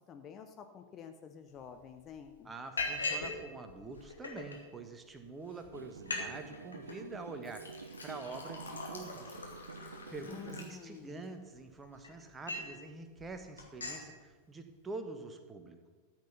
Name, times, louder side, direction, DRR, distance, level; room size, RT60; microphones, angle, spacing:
voice 1, 0.1-2.5 10.2-11.2, left 7 dB, 30° left, 7 dB, 0.9 m, -49 dB
Liquid, 1.6-1.7 2.0-2.3 2.8-3.4 3.7-4.6 5.2-5.3 5.6-5.7 6.0-6.3 6.5-7.0 7.4-11.2 11.8-12.8 13.2-13.3 13.6-14.0, left 3 dB, 75° left, 2.6 m, -40 dB
voice 2, 2.4-7.6 8.0-9.4 9.8-15.9, right 3 dB, 15° right, 7 dB, 1.5 m, -46 dB
sound 1, 5.7-10.7, right 5 dB, 70° right, 0.6 m, -49 dB
14.0 x 8.1 x 6.8 m, 1.4 s
figure-of-eight pair, 90°, 0 cm